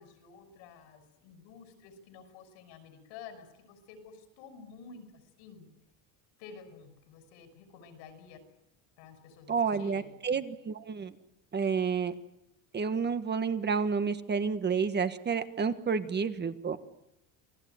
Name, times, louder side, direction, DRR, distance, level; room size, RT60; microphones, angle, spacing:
voice 1, 0.0-5.7 6.4-8.4 9.0-10.2, left 5 dB, 80° left, 9 dB, 6.4 m, -51 dB
voice 2, 9.5-11.1 11.5-12.1 12.7-16.8, right 5 dB, 25° right, 11 dB, 1.4 m, -30 dB
27.5 x 18.5 x 9.4 m, 0.84 s
cardioid pair, 140°, 43 cm